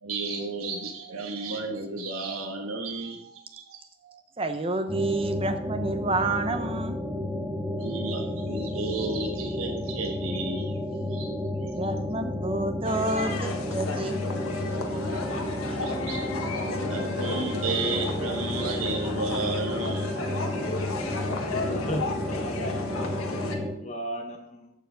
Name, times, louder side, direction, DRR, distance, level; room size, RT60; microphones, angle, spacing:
voice 1, 0.0-4.2 7.8-10.7 11.1-11.3 15.8-16.3 16.9-20.1, right 3 dB, 90° right, 1 dB, 1.4 m, -33 dB
voice 2, 4.4-7.0 11.7-14.2 15.7-15.8, right 2 dB, 25° right, 7 dB, 0.8 m, -29 dB
sound 1, 4.9-23.7, left 1 dB, 10° right, 1.1 m, -32 dB
sound 2, 12.8-23.6, left 3 dB, 90° left, 1.5 m, -34 dB
voice 3, 21.5-24.7, equal, 30° left, 3 dB, 0.9 m, -37 dB
14.5 x 4.8 x 5.2 m, 0.78 s
head